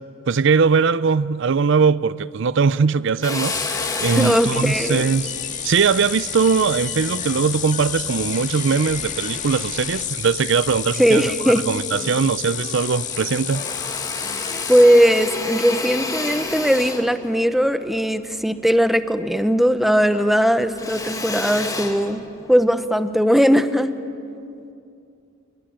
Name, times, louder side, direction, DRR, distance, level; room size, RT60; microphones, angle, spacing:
voice 1, 0.3-3.5 4.0-5.3 5.6-11.2 11.7-13.6, right 5 dB, 65° right, 0.5 m, -20 dB
Drill, 3.2-7.8 8.3-9.5 9.9-10.9 11.2-11.3 11.6-12.6 12.9-19.5 19.8-22.7, left 3 dB, 20° left, 2.2 m, -31 dB
sound 1, 3.4-14.8, left 8 dB, 40° left, 1.9 m, -30 dB
voice 2, 4.1-5.0 11.0-11.6 14.4-22.2 22.5-23.9, equal, ahead, 0.9 m, -18 dB
27.0 x 22.0 x 8.8 m
head